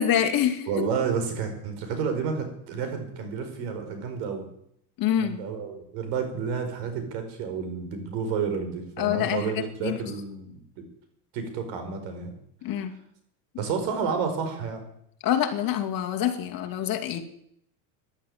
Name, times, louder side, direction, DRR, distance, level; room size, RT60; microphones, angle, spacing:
voice 1, 0.0-0.7 5.0-5.4 9.0-9.5 9.8-10.0 12.6-12.9 15.2-17.2, left 10 dB, 45° left, 3 dB, 2.5 m, -25 dB
voice 2, 0.7-4.5 5.2-10.8 11.3-12.3 13.6-14.8, right 6 dB, 70° right, 7 dB, 5.2 m, -30 dB
14.5 x 11.5 x 8.8 m, 0.71 s
supercardioid pair, 135°, 49 cm